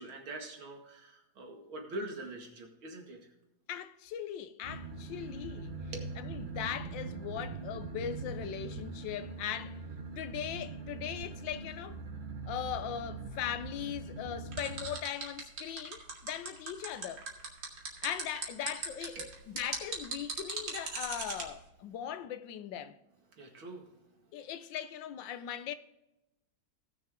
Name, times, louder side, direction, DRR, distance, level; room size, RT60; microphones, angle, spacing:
voice 1, 0.0-3.2 5.9-6.1 19.2-19.3 23.4-23.8, right 2 dB, 85° right, 2.9 m, -43 dB
voice 2, 3.7-5.8 6.2-9.8 10.2-12.0 12.5-17.3 18.0-19.2 19.5-23.0 24.3-25.8, left 10 dB, 75° left, 1.3 m, -39 dB
sound 1, 4.6-14.9, right 3 dB, 30° right, 1.1 m, -42 dB
sound 2, 14.5-21.4, right 4 dB, 65° right, 2.7 m, -38 dB
18.5 x 6.6 x 3.6 m
omnidirectional pair, 2.2 m